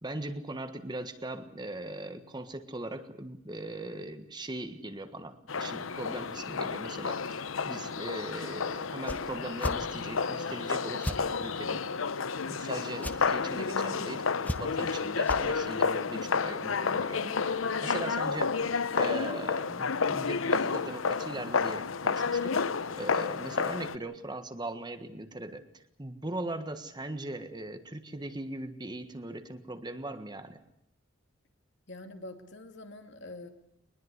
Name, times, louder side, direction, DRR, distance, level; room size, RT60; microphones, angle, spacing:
voice 1, 0.0-11.8 12.4-22.6 22.9-30.6, right 2 dB, 20° right, 9 dB, 1.5 m, -40 dB
sound 1, 5.5-24.0, left 5 dB, 80° left, 0.8 m, -31 dB
sound 2, 9.0-9.2 9.6-9.8 11.0-11.2 13.0-13.2 14.4-14.9 15.2-15.4, left 1 dB, 10° left, 1.1 m, -34 dB
voice 2, 31.9-33.5, left 2 dB, 60° left, 6 dB, 2.7 m, -45 dB
22.5 x 21.0 x 8.2 m, 0.74 s
head